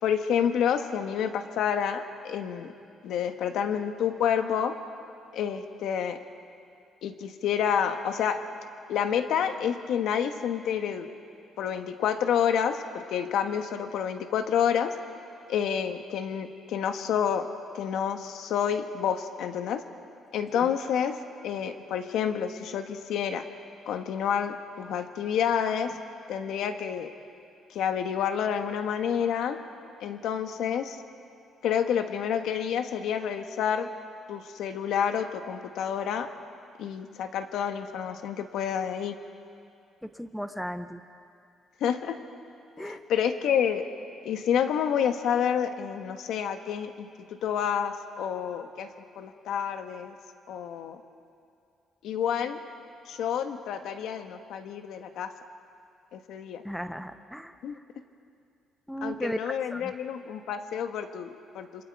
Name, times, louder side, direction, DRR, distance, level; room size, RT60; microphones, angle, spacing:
voice 1, 0.0-2.7 3.0-4.7 5.3-6.2 7.0-8.4 8.9-11.1 11.6-14.9 15.5-17.5 17.7-19.8 20.3-23.5 23.8-26.0 26.3-27.1 27.7-29.6 30.0-31.0 31.6-33.9 34.3-36.3 36.8-39.1 41.8-42.2 42.8-43.8 44.2-50.2 50.5-51.0 52.0-52.6 53.0-55.3 56.1-56.6 57.6-57.8 59.0-61.8, left 8 dB, 70° left, 7 dB, 1.3 m, -29 dB
voice 2, 40.0-41.0 42.8-43.0 56.6-57.6 58.9-59.9, equal, ahead, 10 dB, 0.7 m, -36 dB
27.0 x 26.0 x 4.8 m, 2.5 s
cardioid pair, 170°, 0 cm